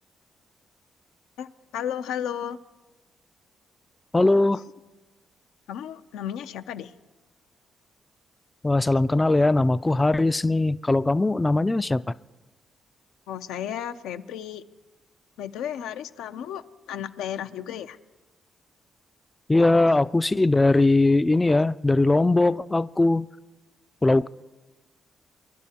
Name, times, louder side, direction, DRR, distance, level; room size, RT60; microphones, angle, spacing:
voice 1, 1.4-2.6 5.7-6.9 13.3-14.6 15.4-18.0, left 9 dB, 90° left, 0.5 m, -33 dB
voice 2, 4.1-4.6 8.6-12.0 19.5-23.3 24.0-24.3, left 2 dB, 20° left, 0.3 m, -20 dB
25.5 x 11.5 x 2.8 m
supercardioid pair, 65°, 0 cm